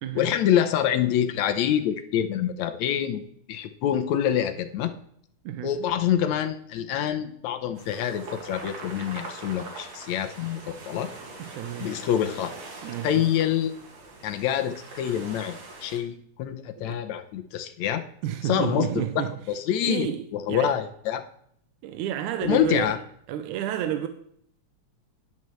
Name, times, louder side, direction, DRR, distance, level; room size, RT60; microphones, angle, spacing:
voice 1, 0.2-4.9 5.6-11.1 11.8-12.5 13.0-13.7 14.2-15.6 15.8-18.0 18.4-18.9 19.2-21.2 22.4-23.0, left 10 dB, 70° left, 2.0 m, -26 dB
voice 2, 5.4-5.8 11.4-12.0 12.8-13.2 16.8-17.0 18.2-19.4 19.9-20.8 21.8-23.0 23.3-24.1, right 11 dB, 85° right, 2.1 m, -31 dB
sound 1, 7.7-16.0, right 3 dB, 60° right, 3.1 m, -42 dB
13.0 x 10.5 x 3.2 m
omnidirectional pair, 3.5 m